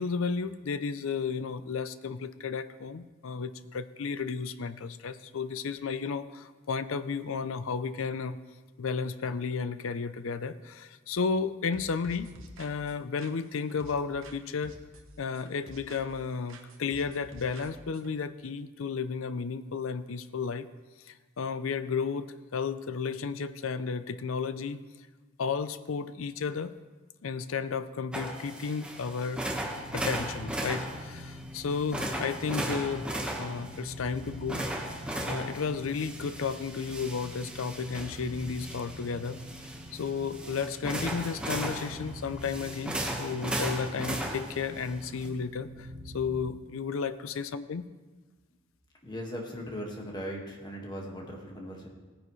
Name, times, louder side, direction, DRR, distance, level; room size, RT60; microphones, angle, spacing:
voice 1, 0.0-8.4 8.8-14.8 15.2-20.7 21.0-24.8 25.4-26.7 27.2-29.5 29.9-33.1 33.4-34.7 35.3-39.4 39.9-47.9, left 5 dB, 70° left, 12 dB, 0.5 m, -33 dB
sound 1, 11.7-14.4 14.6-16.2 16.5-18.1, right 1 dB, 70° right, 1.2 m, -50 dB
sound 2, 28.1-45.3, right 1 dB, 5° right, 1.3 m, -37 dB
sound 3, 29.6-46.6, left 1 dB, 30° right, 2.6 m, -46 dB
voice 2, 49.0-51.9, equal, 20° left, -1 dB, 1.7 m, -38 dB
17.5 x 10.0 x 3.2 m, 1.3 s
head